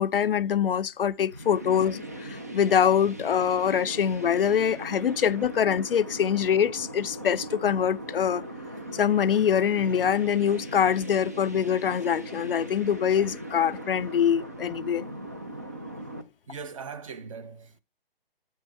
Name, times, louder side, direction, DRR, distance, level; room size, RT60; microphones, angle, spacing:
voice 1, 0.0-8.4 8.9-15.1, left 8 dB, 65° left, 0.5 m, -24 dB
sound 1, 1.2-16.2, right 1 dB, 15° right, 0.4 m, -39 dB
voice 2, 16.5-17.8, right 5 dB, 35° right, 0.8 m, -40 dB
9.0 x 4.4 x 4.7 m
hypercardioid pair, 160°, 31 cm